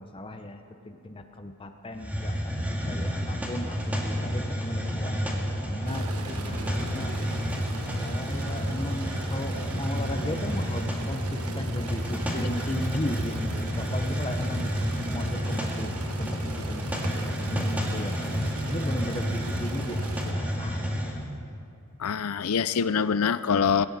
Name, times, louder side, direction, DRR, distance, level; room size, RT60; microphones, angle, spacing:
voice 1, 0.0-7.1 7.9-14.9 15.1-18.2 18.7-21.1, left 1 dB, 25° left, 7 dB, 0.7 m, -36 dB
Hiss, 2.0-21.2, equal, 10° right, 1.8 m, -30 dB
sound 1, 5.9-20.3, right 2 dB, 90° right, 1.2 m, -39 dB
voice 2, 22.0-23.9, left 6 dB, 85° left, 15 dB, 0.5 m, -24 dB
20.5 x 16.5 x 4.1 m, 2.6 s
head